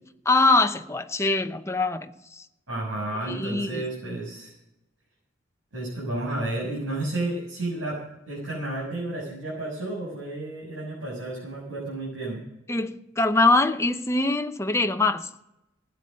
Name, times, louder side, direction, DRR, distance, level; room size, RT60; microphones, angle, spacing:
voice 1, 0.3-2.1 3.3-3.8 12.7-15.3, left 2 dB, 15° left, 0.8 m, -23 dB
voice 2, 2.7-4.5 5.7-12.4, right 2 dB, 80° right, 6.7 m, -32 dB
16.0 x 10.0 x 6.4 m
head